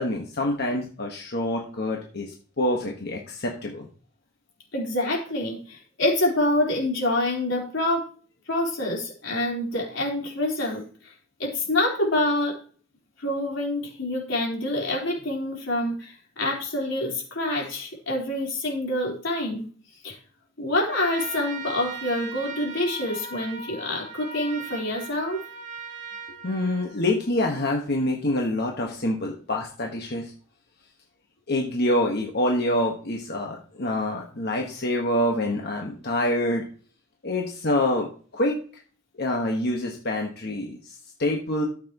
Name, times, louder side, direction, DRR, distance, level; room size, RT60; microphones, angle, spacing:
voice 1, 0.0-3.9 26.4-30.3 31.5-36.6 37.2-38.6 39.2-41.6, left 1 dB, 60° left, 0 dB, 1.5 m, -26 dB
voice 2, 4.7-8.0 8.5-11.1 11.4-12.5 13.2-19.7 20.0-20.1 20.6-25.4, left 1 dB, 90° left, -2 dB, 4.1 m, -26 dB
Trumpet, 20.8-27.3, right 5 dB, 40° right, 1.6 m, -39 dB
13.5 x 7.6 x 3.0 m, 0.42 s
head